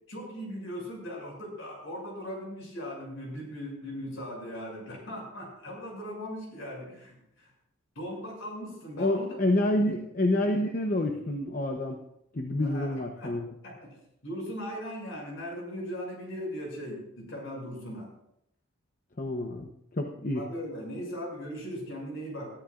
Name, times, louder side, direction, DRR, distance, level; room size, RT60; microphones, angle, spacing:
voice 1, 0.1-7.5 7.9-9.4 9.7-10.0 12.6-13.3 13.6-13.9 14.2-18.1 20.3-22.5, equal, 70° left, -1 dB, 6.7 m, -38 dB
voice 2, 9.0-12.0 12.3-13.5 19.2-20.5, left 1 dB, 40° left, 3 dB, 0.8 m, -28 dB
21.5 x 13.5 x 2.5 m, 0.79 s
head